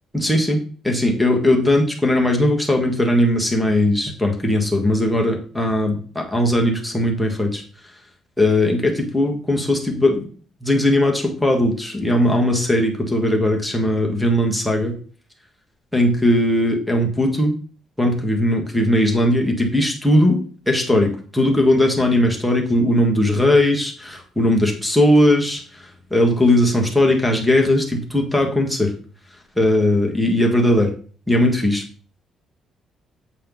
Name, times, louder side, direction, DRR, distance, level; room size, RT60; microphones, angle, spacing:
voice 1, 0.1-7.6 8.4-10.3 10.6-15.0 15.9-17.5 18.0-20.4 20.7-28.9 29.6-30.9 31.3-31.8, left 1 dB, ahead, 0 dB, 1.4 m, -18 dB
8.4 x 4.3 x 3.9 m, 0.41 s
cardioid pair, 145°, 0 cm